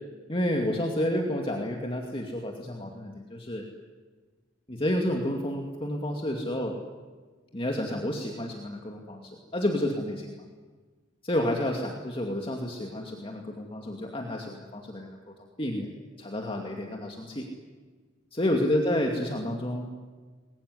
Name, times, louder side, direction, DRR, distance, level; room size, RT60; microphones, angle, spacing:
voice 1, 0.3-3.6 4.7-6.8 7.5-10.4 11.2-15.2 15.6-15.9 16.2-17.5 18.4-20.0, left 1 dB, 30° left, 1 dB, 2.4 m, -30 dB
26.0 x 21.5 x 9.8 m, 1.4 s
head